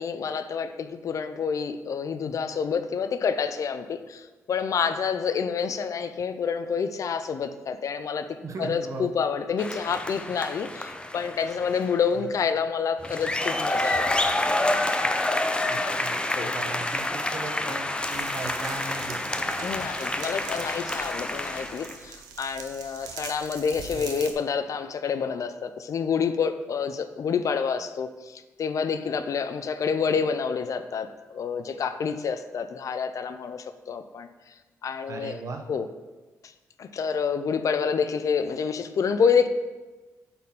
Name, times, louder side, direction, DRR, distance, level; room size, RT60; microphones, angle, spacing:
voice 1, 0.0-14.2 16.4-16.6 19.6-34.3 34.8-35.4 35.7-35.9 36.8-39.5, left 6 dB, 60° left, 10 dB, 0.5 m, -28 dB
voice 2, 8.4-9.1 12.1-12.3 15.7-19.4 23.9-24.1 35.1-35.6, right 3 dB, 55° right, 4 dB, 0.9 m, -38 dB
sound 1, 9.6-12.0 13.0-21.9, left 1 dB, 15° left, 0.6 m, -28 dB
sound 2, 18.1-24.3, right 6 dB, 90° right, 0.7 m, -42 dB
8.3 x 4.3 x 3.7 m, 1.2 s
cardioid pair, 65°, 6 cm